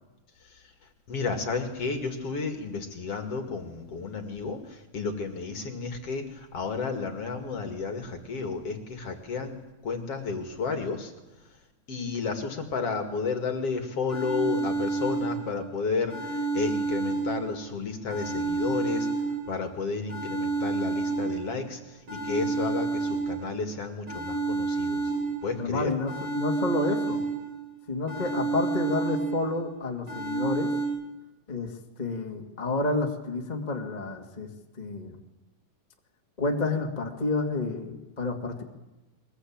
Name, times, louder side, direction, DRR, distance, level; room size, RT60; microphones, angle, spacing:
voice 1, 1.1-9.6 9.8-11.1 11.9-25.1 25.4-25.9, left 4 dB, 45° left, 6 dB, 2.8 m, -32 dB
sound 1, 13.7-13.8 14.1-15.7 16.1-17.7 18.1-19.7 20.1-21.7 22.1-23.7 24.1-25.7 26.1-27.7 28.1-29.7 30.1-30.9, right 4 dB, 40° right, 7.9 m, -30 dB
voice 2, 25.6-27.2 27.9-30.7 31.5-31.7 32.0-34.5 34.8-35.2 36.4-38.6, left 3 dB, 15° left, 2 dB, 1.7 m, -30 dB
23.0 x 21.5 x 8.9 m, 1.0 s
omnidirectional pair, 4.2 m